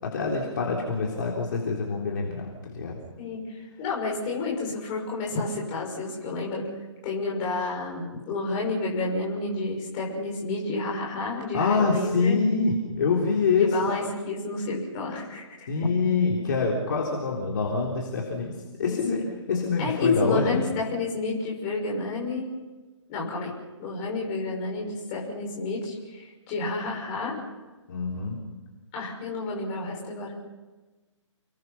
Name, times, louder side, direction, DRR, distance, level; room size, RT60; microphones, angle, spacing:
voice 1, 0.0-3.0 11.5-14.0 15.7-18.5 18.8-20.6 27.9-28.4, left 4 dB, 40° left, -2 dB, 3.9 m, -25 dB
voice 2, 3.8-6.7 7.0-12.4 13.6-15.4 15.8-15.9 18.8-19.0 19.8-22.5 23.1-23.5 23.8-27.4 28.9-30.3, left 3 dB, 15° left, -2 dB, 6.0 m, -30 dB
30.0 x 22.0 x 5.8 m, 1.2 s
hypercardioid pair, 175°, 16 cm